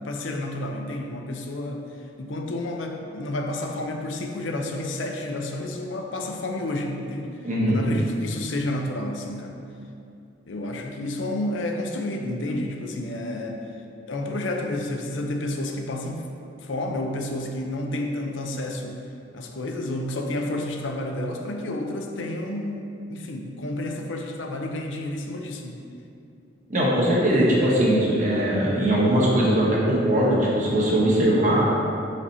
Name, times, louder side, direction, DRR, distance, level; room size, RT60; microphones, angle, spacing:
voice 1, 0.0-1.9 2.2-7.3 7.7-9.6 10.5-13.6 14.1-16.2 16.6-19.0 19.3-25.8, left 1 dB, 90° left, 2 dB, 0.6 m, -30 dB
voice 2, 7.4-7.8 26.7-31.6, right 1 dB, 40° right, -5 dB, 1.3 m, -20 dB
5.6 x 5.0 x 4.1 m, 2.5 s
head